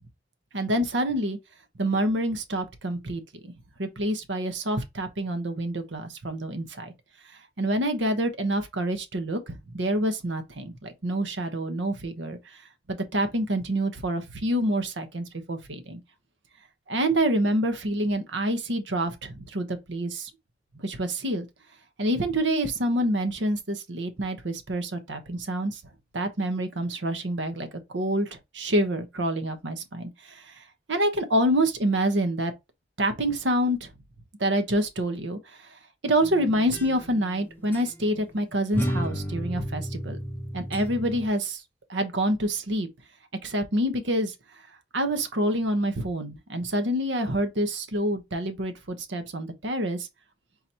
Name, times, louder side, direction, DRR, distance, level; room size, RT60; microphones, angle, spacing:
voice 1, 0.5-1.4 1.8-3.5 3.8-6.9 7.6-12.4 13.1-16.0 16.9-20.3 20.8-21.5 22.0-25.8 26.1-27.7 27.9-30.6 30.9-32.5 33.0-33.9 34.4-35.8 36.0-40.2 40.5-41.6 41.9-42.9 43.4-44.3 44.9-50.1, right 1 dB, 80° right, 0.9 m, -27 dB
sound 1, 36.2-37.4 37.7-37.9 38.7-41.3, equal, 10° left, 0.6 m, -32 dB
4.0 x 2.8 x 4.2 m
head